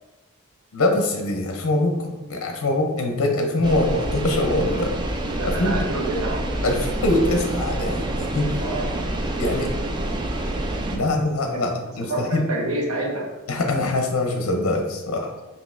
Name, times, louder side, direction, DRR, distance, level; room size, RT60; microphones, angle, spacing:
voice 1, 0.7-4.9 5.4-5.8 6.6-8.5 9.4-9.7 10.9-12.4 13.5-15.3, left 2 dB, 70° left, 2 dB, 0.6 m, -23 dB
sound 1, 3.6-11.0, right 1 dB, 20° right, 0.3 m, -27 dB
voice 2, 5.3-6.4 8.6-9.0 11.5-11.7 12.1-13.3, right 2 dB, 85° right, -1 dB, 0.8 m, -28 dB
5.0 x 2.8 x 2.5 m, 1.1 s
head